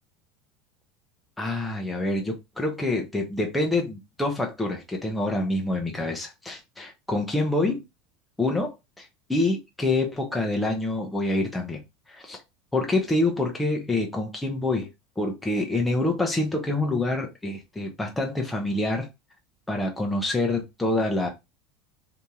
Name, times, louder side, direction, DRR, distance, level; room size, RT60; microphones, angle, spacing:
voice 1, 1.4-7.8 8.4-11.8 12.1-12.4 12.7-14.9 15.2-19.1 19.7-21.3, left 2 dB, 10° left, 0.9 m, -26 dB
2.9 x 2.7 x 3.6 m
supercardioid pair, 110°, 0 cm